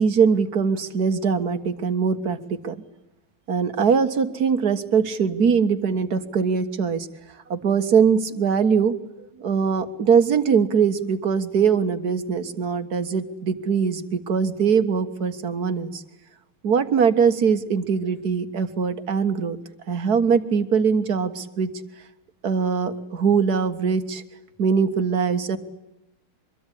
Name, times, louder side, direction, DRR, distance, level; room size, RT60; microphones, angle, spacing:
voice 1, 0.0-2.4 2.6-2.8 3.5-7.1 7.5-8.9 9.4-16.0 16.6-19.6 19.9-21.7 22.4-24.2 24.6-25.6, right 6 dB, 50° right, 9 dB, 2.0 m, -21 dB
25.0 x 22.5 x 10.0 m, 0.92 s
omnidirectional pair, 2.3 m